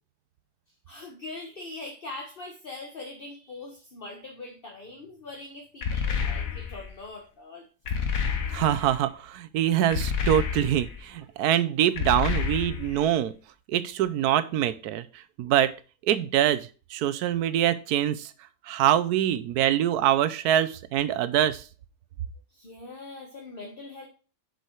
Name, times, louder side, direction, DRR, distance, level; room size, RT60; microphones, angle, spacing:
voice 1, 0.9-7.7 22.5-24.1, left 2 dB, 40° left, 1 dB, 1.2 m, -42 dB
sound 1, 5.8-6.9 7.9-8.9 9.9-11.0 12.0-13.0, left 6 dB, 65° left, 1.4 m, -29 dB
voice 2, 8.5-13.3 13.7-15.1 15.4-15.7 16.0-18.3 18.7-21.6, right 11 dB, 85° right, 13 dB, 1.2 m, -24 dB
6.7 x 4.9 x 4.6 m, 0.35 s
omnidirectional pair, 1.6 m